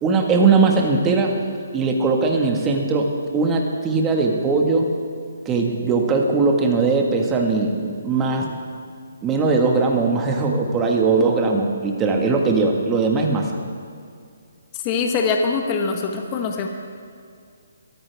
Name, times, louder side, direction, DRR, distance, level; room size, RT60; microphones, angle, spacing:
voice 1, 0.0-1.3 1.7-3.1 3.3-4.9 5.4-8.5 9.2-13.5, right 4 dB, 15° right, 1 dB, 1.6 m, -19 dB
voice 2, 14.7-16.7, left 4 dB, 25° left, 3 dB, 1.2 m, -23 dB
21.5 x 14.5 x 3.5 m, 2.3 s
hypercardioid pair, 160°, 0 cm